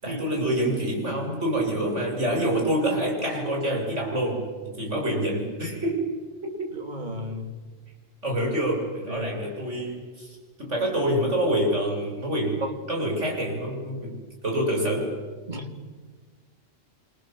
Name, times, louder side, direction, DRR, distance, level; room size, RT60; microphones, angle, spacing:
voice 1, 0.0-6.1 6.4-6.8 8.2-14.2 14.4-15.1, right 1 dB, 60° right, 0 dB, 7.6 m, -27 dB
voice 2, 6.7-7.5 9.1-9.5 12.6-12.7 15.5-15.7, equal, 35° right, 4 dB, 3.1 m, -33 dB
29.0 x 26.5 x 7.7 m, 1.4 s
omnidirectional pair, 1.4 m